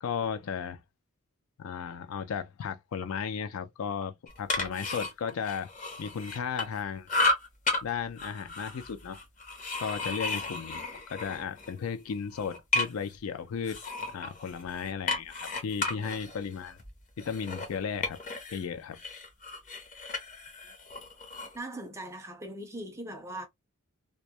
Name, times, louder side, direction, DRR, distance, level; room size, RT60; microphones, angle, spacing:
voice 1, 0.0-0.8 1.6-5.7 6.0-7.1 7.8-9.2 9.8-10.8 11.1-13.8 14.1-16.8 17.2-18.2 18.5-19.0, left 6 dB, 75° left, 0.4 m, -35 dB
sound 1, 4.3-6.8 7.1-7.8 8.2-11.7 12.1-13.2 13.7-18.6 18.9-21.6, left 2 dB, 35° left, 0.7 m, -33 dB
voice 2, 21.5-23.5, right 1 dB, 15° right, 0.4 m, -40 dB
2.2 x 2.0 x 2.7 m
head